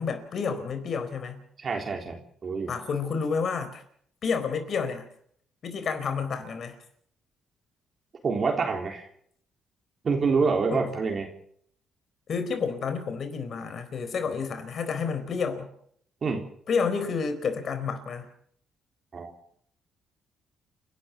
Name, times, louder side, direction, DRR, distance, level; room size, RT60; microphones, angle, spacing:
voice 1, 0.0-1.4 2.7-3.8 4.2-5.1 5.6-6.8 10.7-10.9 12.3-15.7 16.7-18.3, left 5 dB, 55° left, 9 dB, 4.3 m, -30 dB
voice 2, 1.6-2.2 2.4-2.7 8.2-9.1 10.0-11.3 16.2-16.4 19.1-19.3, right 4 dB, 45° right, 2 dB, 3.7 m, -26 dB
30.0 x 12.0 x 7.3 m, 0.65 s
cardioid pair, 90°, 0 cm